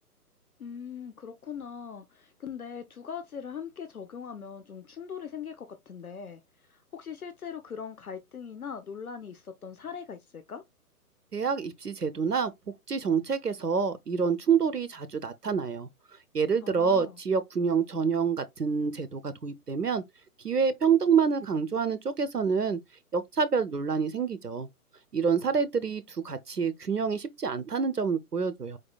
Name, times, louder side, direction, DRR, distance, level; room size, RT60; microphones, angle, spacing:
voice 1, 0.6-6.4 6.7-10.6 16.6-17.2, left 7 dB, 65° left, 0.9 m, -41 dB
voice 2, 11.3-12.5 12.9-15.9 16.3-20.0 20.4-22.8 23.1-24.7 25.1-28.8, right 6 dB, 85° right, 0.9 m, -27 dB
4.9 x 4.4 x 2.3 m
figure-of-eight pair, 130°, 46 cm